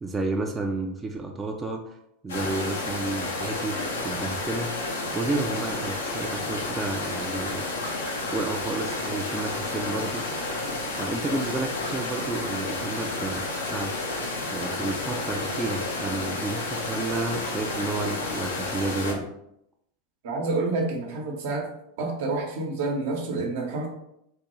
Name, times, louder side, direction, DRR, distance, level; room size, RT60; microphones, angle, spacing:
voice 1, 0.0-2.0 2.2-3.8 4.0-4.7 5.1-7.7 8.3-10.2 11.0-13.9 14.5-19.3, right 2 dB, 20° right, 3 dB, 0.4 m, -31 dB
sound 1, 2.3-19.1, left 2 dB, 90° left, 0.7 m, -31 dB
voice 2, 20.2-21.7 22.0-23.9, right 3 dB, 70° right, 1 dB, 0.8 m, -28 dB
3.5 x 2.2 x 3.1 m, 0.78 s
hypercardioid pair, 105°, 0 cm